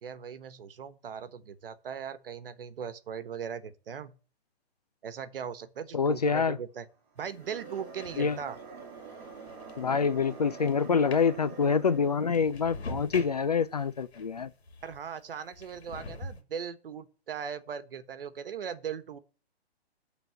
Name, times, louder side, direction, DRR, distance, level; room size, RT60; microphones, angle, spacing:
voice 1, 0.0-4.1 5.0-6.9 7.2-8.6 14.8-19.2, right 7 dB, 60° right, 1.2 m, -39 dB
voice 2, 5.9-6.6 8.2-8.4 9.8-14.5, left 5 dB, 40° left, 0.4 m, -26 dB
sound 1, 7.2-15.1 15.5-16.4, left 2 dB, 75° left, 2.4 m, -46 dB
sound 2, 7.2-12.5, right 5 dB, 20° right, 1.6 m, -46 dB
12.0 x 4.0 x 8.0 m
hypercardioid pair, 180°, 32 cm